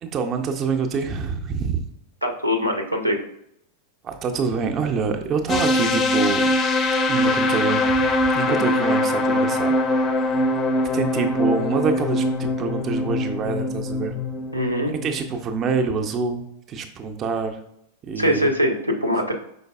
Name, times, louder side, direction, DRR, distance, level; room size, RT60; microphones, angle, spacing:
voice 1, 0.0-1.9 4.0-6.5 7.1-9.7 10.1-10.4 10.9-14.1 14.9-16.4 16.7-17.6 18.0-18.5, right 5 dB, 30° right, 5 dB, 0.5 m, -26 dB
voice 2, 2.2-3.2 8.4-8.6 14.5-14.9 18.2-19.3, equal, 90° right, 4 dB, 0.6 m, -22 dB
sound 1, 5.5-15.3, left 1 dB, 25° left, 0.4 m, -22 dB
5.1 x 3.8 x 2.3 m, 0.76 s
figure-of-eight pair, 90°, 0 cm